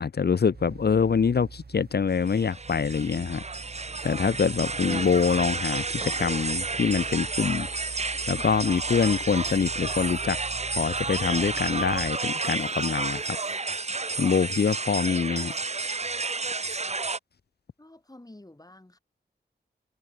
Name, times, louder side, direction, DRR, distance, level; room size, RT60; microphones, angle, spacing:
voice 1, 0.0-3.4 4.0-7.7 8.3-10.4 10.7-13.4 14.2-15.5, left 6 dB, 60° left, 0.7 m, -25 dB
sound 1, 0.5-12.1, right 4 dB, 60° right, 3.8 m, -43 dB
sound 2, 2.2-17.2, right 3 dB, 35° right, 1.1 m, -31 dB
voice 2, 17.8-19.0, left 1 dB, 20° left, 4.9 m, -49 dB
wide cardioid pair, 65°, 19 cm